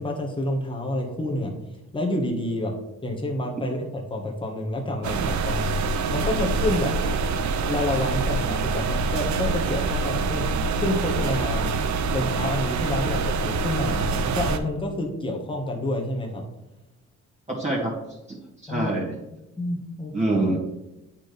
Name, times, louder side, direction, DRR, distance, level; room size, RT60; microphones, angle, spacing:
voice 1, 0.0-1.5 1.9-2.7 3.0-5.8 6.1-6.9 7.6-10.4 10.8-11.7 12.1-16.4 18.7-18.9 19.6-20.1, left 1 dB, 15° left, 0 dB, 1.4 m, -28 dB
sound 1, 5.0-14.6, right 4 dB, 70° right, 0.7 m, -25 dB
voice 2, 17.6-17.9 18.3-18.4 18.6-19.1 20.1-20.6, right 2 dB, 20° right, -7 dB, 2.0 m, -24 dB
8.7 x 4.4 x 3.4 m, 0.95 s
cardioid pair, 90°, 30 cm